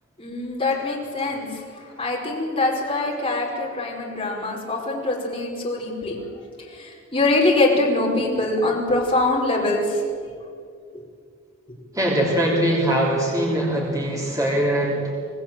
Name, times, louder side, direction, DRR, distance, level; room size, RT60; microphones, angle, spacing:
voice 1, 0.2-1.6 2.0-6.2 6.7-10.0, left 2 dB, 25° left, -2 dB, 5.1 m, -23 dB
voice 2, 11.9-15.1, right 1 dB, 15° right, -2 dB, 3.4 m, -22 dB
27.0 x 19.0 x 7.7 m, 2.2 s
head